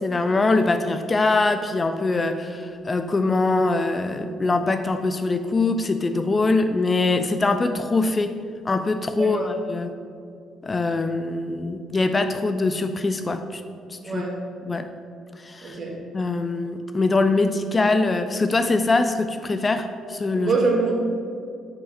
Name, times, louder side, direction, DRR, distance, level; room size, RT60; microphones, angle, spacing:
voice 1, 0.0-8.3 8.7-9.9 10.6-13.6 13.9-14.2 14.7-14.9 15.4-15.8 16.1-20.5, left 3 dB, 25° left, 8 dB, 0.4 m, -23 dB
voice 2, 9.1-9.5 14.0-14.3 15.6-15.9 20.3-20.9, right 3 dB, 45° right, -2 dB, 1.7 m, -24 dB
5.8 x 4.6 x 5.8 m, 2.4 s
figure-of-eight pair, 45°, 0 cm